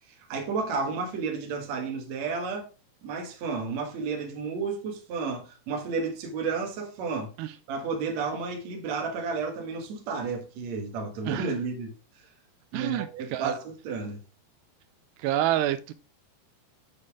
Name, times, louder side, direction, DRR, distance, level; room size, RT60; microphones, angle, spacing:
voice 1, 0.1-2.7 3.0-7.3 7.7-11.9 12.7-14.2, right 4 dB, 55° right, 2.3 m, -32 dB
voice 2, 12.7-13.6 15.2-15.9, right 12 dB, 85° right, 2.7 m, -28 dB
7.5 x 6.6 x 3.6 m
omnidirectional pair, 4.7 m